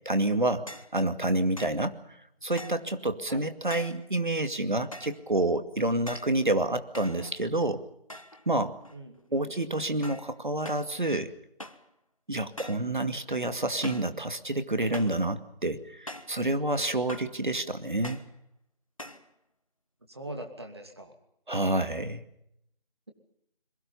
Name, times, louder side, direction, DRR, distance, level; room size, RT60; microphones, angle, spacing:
voice 1, 0.1-0.7 0.9-1.9 2.4-7.8 8.5-8.7 9.3-11.3 12.3-18.2 21.5-22.2, right 1 dB, 55° right, 9 dB, 2.3 m, -28 dB
sound 1, 0.7-1.0 1.6-1.8 2.6-2.9 3.7-4.1 4.9-5.2 6.1-6.4 6.9-7.6 8.1-8.5 8.8-9.3 10.0-10.3 10.6-10.9 11.6-11.9 12.6-12.9 13.8-14.2 14.9-15.2 16.1-16.4 17.1-17.4 18.0-18.3 19.0-19.3, left 1 dB, 35° left, 1.1 m, -43 dB
voice 2, 8.9-9.5 20.1-21.1, right 1 dB, 25° right, 5 dB, 2.7 m, -42 dB
27.0 x 23.0 x 5.6 m, 0.76 s
figure-of-eight pair, 175°, 29 cm